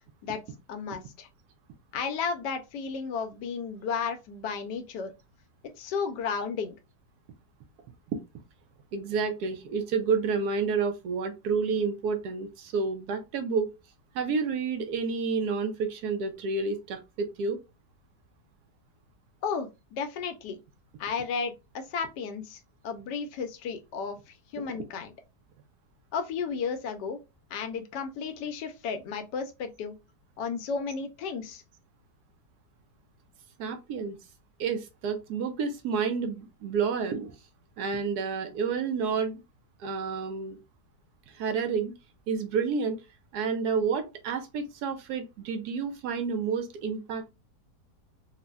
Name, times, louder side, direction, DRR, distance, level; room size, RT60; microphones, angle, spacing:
voice 1, 0.7-1.3 1.9-5.1 5.7-6.8 19.4-20.6 21.0-25.1 26.1-27.2 27.5-30.0 30.4-31.6, left 5 dB, 80° left, 1.2 m, -33 dB
voice 2, 8.9-13.7 14.1-17.6 24.6-24.8 33.6-34.2 34.6-37.3 37.8-39.4 39.8-40.6 41.3-41.9 42.3-43.0 43.3-47.3, right 5 dB, 75° right, 1.1 m, -30 dB
3.8 x 2.1 x 2.2 m
omnidirectional pair, 1.8 m